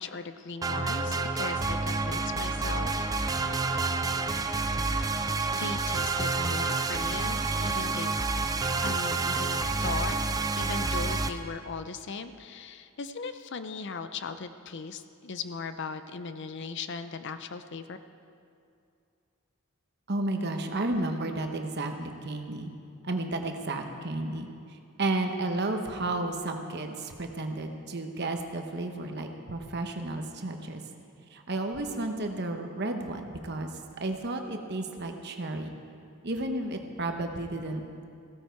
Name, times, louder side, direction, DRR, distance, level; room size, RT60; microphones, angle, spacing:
voice 1, 0.0-3.1 5.5-8.2 8.8-10.2 10.5-18.0, left 4 dB, 55° left, 10 dB, 0.6 m, -38 dB
sound 1, 0.6-11.3, right 3 dB, 15° right, 0.4 m, -29 dB
voice 2, 20.1-22.7 23.0-30.8 31.3-33.7 34.0-35.7 36.2-37.8, right 2 dB, 50° right, 5 dB, 1.0 m, -32 dB
16.0 x 13.0 x 4.6 m, 2.5 s
head